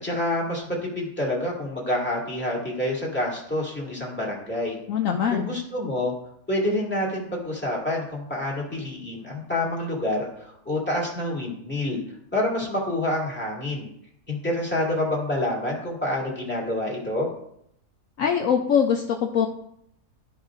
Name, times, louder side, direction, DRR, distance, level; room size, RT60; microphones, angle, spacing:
voice 1, 0.0-4.8 5.3-6.1 6.5-12.0 12.3-13.9 14.3-17.3, left 1 dB, 5° left, -4 dB, 2.1 m, -27 dB
voice 2, 4.9-5.5 18.2-19.5, left 7 dB, 65° left, 3 dB, 0.9 m, -22 dB
13.0 x 5.1 x 2.5 m, 0.72 s
omnidirectional pair, 1.7 m